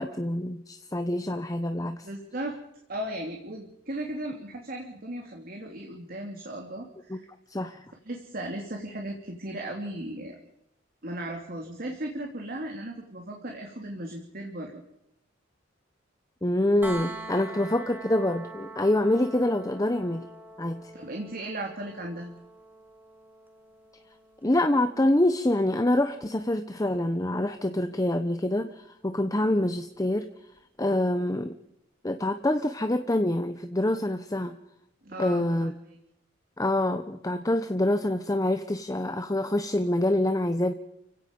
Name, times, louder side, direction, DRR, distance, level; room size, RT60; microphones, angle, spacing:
voice 1, 0.0-2.1 7.1-7.2 7.5-7.8 16.4-20.3 20.6-20.9 24.4-30.3 30.8-31.5 32.0-34.6 35.2-35.7 36.6-40.7, left 1 dB, 20° left, 8 dB, 1.0 m, -26 dB
voice 2, 2.0-2.6 2.9-7.3 8.0-10.4 11.0-14.8 20.9-22.3 35.0-35.9, right 1 dB, 50° right, 2 dB, 3.0 m, -36 dB
sound 1, 16.8-28.6 30.6-30.7, right 2 dB, 10° right, 2.8 m, -45 dB
30.0 x 16.5 x 5.4 m, 0.82 s
head